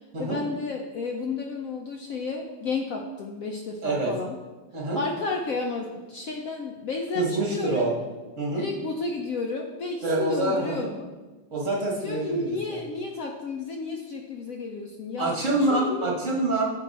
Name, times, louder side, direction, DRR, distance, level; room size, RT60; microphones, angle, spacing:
voice 1, 0.2-4.4 4.9-7.9 8.5-11.1 12.0-16.1, left 3 dB, 80° left, 2 dB, 0.7 m, -32 dB
voice 2, 3.8-4.1 4.7-5.0 7.1-7.9 8.4-8.6 10.0-10.9 11.5-12.8 15.2-16.6, right 2 dB, 40° right, -3 dB, 1.7 m, -26 dB
10.0 x 3.5 x 4.1 m, 1.2 s
omnidirectional pair, 2.1 m